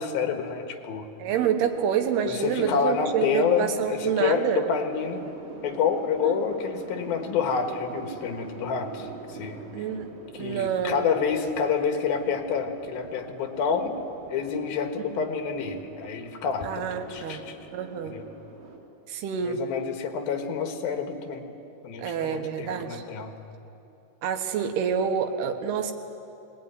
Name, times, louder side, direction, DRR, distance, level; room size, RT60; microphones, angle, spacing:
voice 1, 0.0-1.1 2.2-5.2 5.6-9.6 10.3-14.0 14.3-17.6 18.0-18.2 19.4-21.5 21.8-23.3, left 6 dB, 75° left, 6 dB, 3.3 m, -28 dB
sound 1, 1.2-18.8, right 4 dB, 70° right, 4.5 m, -45 dB
voice 2, 1.2-4.6 6.2-6.4 9.7-10.1 10.4-11.1 16.6-17.4 17.7-18.1 19.1-19.6 22.0-23.0 24.2-25.9, right 8 dB, 85° right, 7 dB, 3.4 m, -27 dB
22.5 x 19.5 x 9.8 m, 2.9 s
omnidirectional pair, 4.5 m